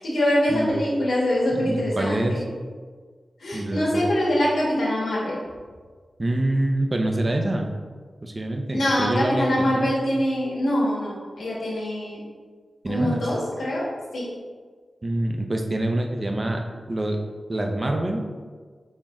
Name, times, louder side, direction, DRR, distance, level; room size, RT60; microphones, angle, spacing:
voice 1, 0.0-2.4 3.4-5.4 8.7-12.2 12.9-13.8 14.1-14.3, equal, 90° left, -6 dB, 1.4 m, -24 dB
voice 2, 1.6-2.4 3.5-4.0 6.2-7.7 8.2-9.5 9.7-9.9 12.8-13.2 15.0-17.2 17.5-18.2, right 1 dB, 40° right, 3 dB, 0.6 m, -25 dB
4.2 x 3.0 x 3.6 m, 1.5 s
cardioid pair, 50°, 0 cm